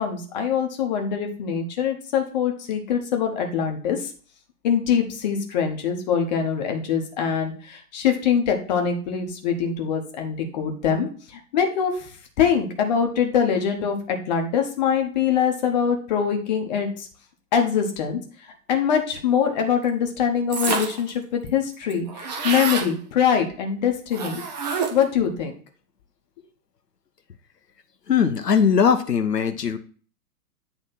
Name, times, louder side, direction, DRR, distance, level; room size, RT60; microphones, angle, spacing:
voice 1, 0.0-4.1 4.6-17.1 17.5-24.4 24.9-25.5, left 7 dB, 30° left, 4 dB, 1.0 m, -23 dB
sound 1, 20.5-21.1 21.5-21.6 21.7-22.9 24.1-25.1, right 5 dB, 25° right, 0.8 m, -27 dB
voice 2, 28.1-29.8, left 7 dB, 85° left, 9 dB, 0.7 m, -20 dB
8.4 x 3.2 x 4.2 m, 0.42 s
figure-of-eight pair, 120°, 48 cm